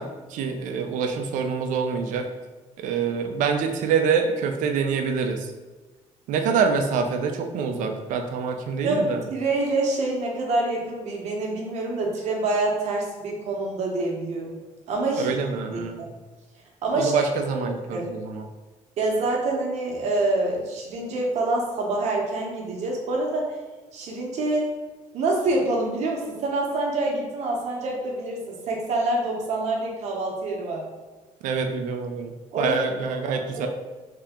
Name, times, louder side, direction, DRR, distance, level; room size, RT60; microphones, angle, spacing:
voice 1, 0.0-2.2 2.8-5.5 6.3-9.3 15.2-16.1 16.9-18.4 31.4-33.7, right 5 dB, 80° right, 5 dB, 0.5 m, -26 dB
voice 2, 8.8-14.6 14.9-15.3 15.7-16.1 16.8-17.3 17.5-18.1 19.0-23.5 23.9-24.7 25.1-30.8 32.5-32.8 33.5-33.7, right 2 dB, 60° right, -1 dB, 0.9 m, -26 dB
3.3 x 2.8 x 3.5 m, 1.3 s
cardioid pair, 165°, 13 cm